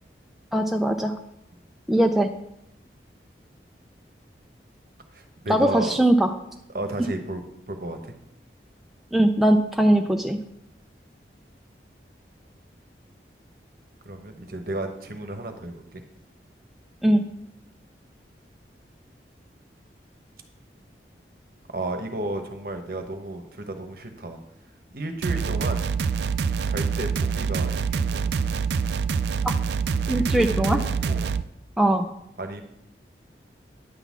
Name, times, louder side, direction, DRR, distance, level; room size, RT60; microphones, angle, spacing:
voice 1, 0.5-1.2 1.9-2.3 5.5-6.3 9.1-10.4 17.0-17.2 29.4-29.5 30.1-30.8 31.8-32.1, right 1 dB, ahead, 3 dB, 0.3 m, -20 dB
voice 2, 5.1-6.0 6.7-8.1 14.0-16.0 21.7-24.4 24.9-25.9 26.6-28.3 30.1-31.3 32.4-32.6, right 2 dB, 55° right, 5 dB, 1.0 m, -33 dB
sound 1, 25.2-31.4, right 5 dB, 70° right, 0.4 m, -25 dB
10.0 x 4.0 x 7.2 m, 0.79 s
head